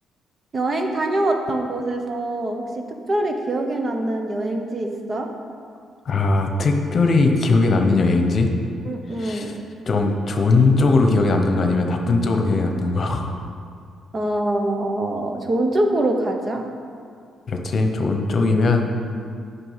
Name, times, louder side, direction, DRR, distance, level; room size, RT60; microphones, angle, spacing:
voice 1, 0.5-2.6 3.1-5.3 8.8-9.5 14.1-16.6, right 1 dB, 35° right, 4 dB, 1.0 m, -24 dB
voice 2, 6.0-8.5 9.2-9.5 9.9-13.3 17.5-18.9, left 3 dB, 50° left, 4 dB, 1.0 m, -19 dB
9.1 x 5.8 x 5.7 m, 2.3 s
cardioid pair, 90°, 0 cm